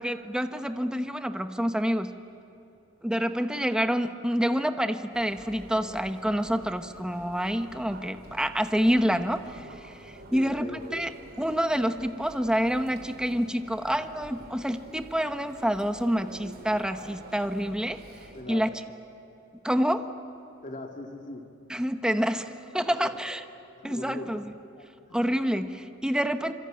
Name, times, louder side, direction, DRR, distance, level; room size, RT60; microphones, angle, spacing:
voice 1, 0.0-2.1 3.0-11.1 11.4-18.0 18.5-18.8 19.6-20.1 21.7-23.4 23.8-24.5 25.1-26.5, equal, 5° right, 8 dB, 1.0 m, -27 dB
Chatter, 5.1-18.4, right 1 dB, 55° right, 4.2 m, -48 dB
voice 2, 10.3-11.1 18.3-18.6 20.6-21.4 22.9-23.1 23.8-24.3 24.8-25.2, left 2 dB, 40° left, 2 dB, 2.2 m, -40 dB
26.5 x 25.0 x 8.9 m, 2.8 s
head